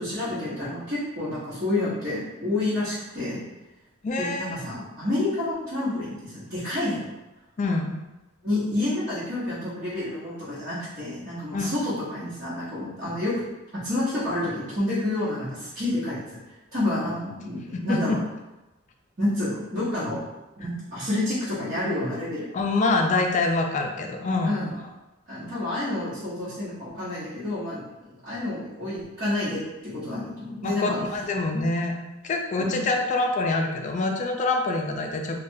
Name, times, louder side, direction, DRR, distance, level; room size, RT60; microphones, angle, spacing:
voice 1, 0.0-3.4 4.2-7.1 8.4-13.4 13.7-16.2 16.7-18.2 19.2-20.2 20.6-22.5 24.4-24.7 25.3-27.8 28.2-31.0 32.6-32.8, left 1 dB, 45° right, -14 dB, 1.0 m, -29 dB
voice 2, 4.0-4.6 7.6-8.0 11.5-11.7 17.7-18.2 22.5-24.6 30.6-31.9 32.2-35.4, left 3 dB, 35° left, 3 dB, 0.3 m, -25 dB
3.3 x 2.2 x 2.6 m, 1.0 s
head